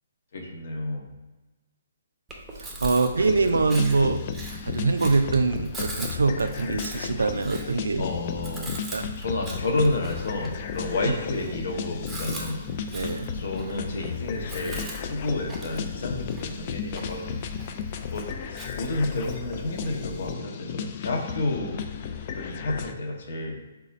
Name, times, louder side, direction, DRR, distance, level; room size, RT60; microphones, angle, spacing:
voice 1, 0.3-1.1 8.0-8.8 9.2-12.6 13.3-17.4 18.1-21.9 22.3-23.6, left 2 dB, 60° left, 2 dB, 0.8 m, -30 dB
Chewing mastication, 2.3-20.3, right 1 dB, 10° right, 0.7 m, -41 dB
voice 2, 2.6-4.2 4.6-8.0 8.9-9.1 12.9-13.3, right 3 dB, 80° right, 9 dB, 0.3 m, -24 dB
sound 1, 3.1-22.9, left 7 dB, 45° left, 0.3 m, -35 dB
4.0 x 2.3 x 4.0 m, 1.1 s
figure-of-eight pair, 130°, 0 cm